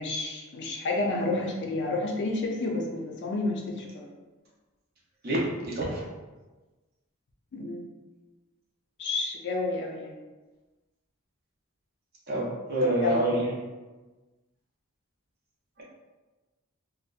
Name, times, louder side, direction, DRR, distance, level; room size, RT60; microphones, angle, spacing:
voice 1, 0.0-4.1 7.5-7.8 9.0-10.1 12.8-13.2, left 2 dB, 55° left, 0 dB, 0.4 m, -30 dB
voice 2, 5.2-6.0 12.3-13.5, right 1 dB, 45° right, -4 dB, 0.6 m, -27 dB
2.6 x 2.1 x 2.4 m, 1.2 s
head